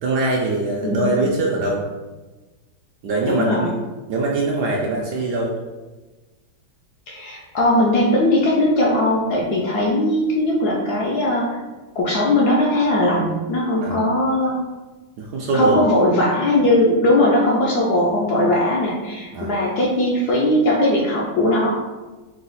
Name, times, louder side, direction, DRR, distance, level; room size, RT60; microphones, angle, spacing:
voice 1, 0.0-1.8 3.0-3.7 4.1-5.5 13.8-14.0 15.2-15.8 19.3-19.5, right 2 dB, 70° right, -3 dB, 1.0 m, -22 dB
voice 2, 3.3-3.7 7.1-11.5 11.9-14.6 15.5-21.7, left 1 dB, 70° left, -3 dB, 1.0 m, -19 dB
4.8 x 2.3 x 4.0 m, 1.2 s
omnidirectional pair, 2.2 m